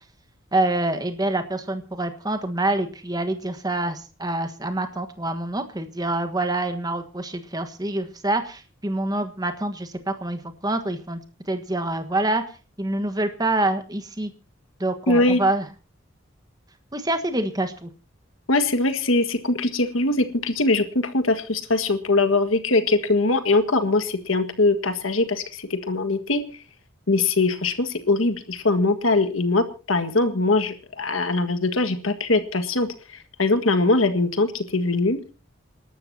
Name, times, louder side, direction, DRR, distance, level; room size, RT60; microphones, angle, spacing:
voice 1, 0.5-11.2 11.5-12.4 12.8-14.3 14.8-15.7 16.9-17.9, right 2 dB, 20° right, 8 dB, 1.4 m, -26 dB
voice 2, 15.1-15.4 18.5-26.4 27.1-32.9 33.4-35.3, left 2 dB, 85° left, 8 dB, 1.8 m, -22 dB
28.0 x 12.5 x 2.8 m, 0.34 s
head